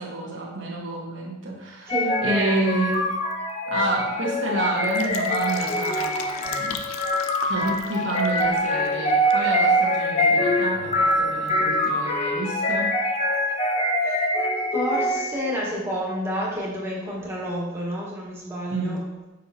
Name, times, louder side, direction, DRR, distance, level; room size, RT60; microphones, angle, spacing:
voice 1, 0.0-2.0 2.2-3.2 3.7-6.8 7.5-13.0 18.7-19.0, right 2 dB, 65° right, -3 dB, 1.3 m, -29 dB
sound 1, 1.9-15.5, equal, 30° left, 0.5 m, -24 dB
voice 2, 1.9-2.5 14.0-14.2 14.7-19.0, equal, 10° right, -5 dB, 1.4 m, -29 dB
Fill (with liquid), 4.7-9.5 9.8-9.9, left 6 dB, 80° left, 0.5 m, -37 dB
6.7 x 5.3 x 2.8 m, 1.1 s
head